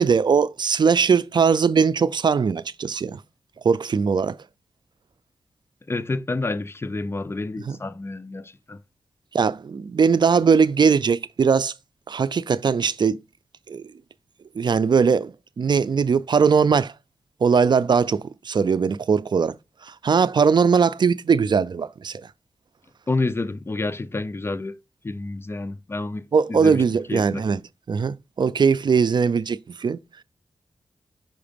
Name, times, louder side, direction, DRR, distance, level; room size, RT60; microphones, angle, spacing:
voice 1, 0.0-3.2 3.6-4.4 7.7-7.8 9.3-11.7 12.1-13.2 13.7-13.8 14.6-16.9 17.4-19.6 19.8-22.3 26.3-27.6 27.9-30.0, right 6 dB, 55° right, 0.5 m, -20 dB
voice 2, 5.9-8.8 23.1-26.8 27.1-27.5, left 2 dB, 30° left, 0.5 m, -29 dB
5.8 x 4.9 x 5.1 m
cardioid pair, 65°, 9 cm